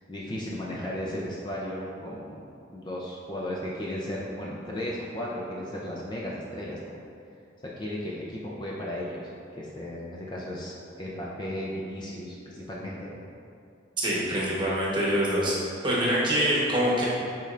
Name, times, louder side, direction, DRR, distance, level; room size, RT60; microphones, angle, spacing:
voice 1, 0.0-2.4 2.7-7.0 7.8-9.3 9.6-13.2, left 1 dB, 25° left, -5 dB, 0.6 m, -35 dB
voice 2, 14.0-15.6 15.8-17.1, equal, 25° right, -6 dB, 1.1 m, -25 dB
8.5 x 4.4 x 2.5 m, 2.5 s
head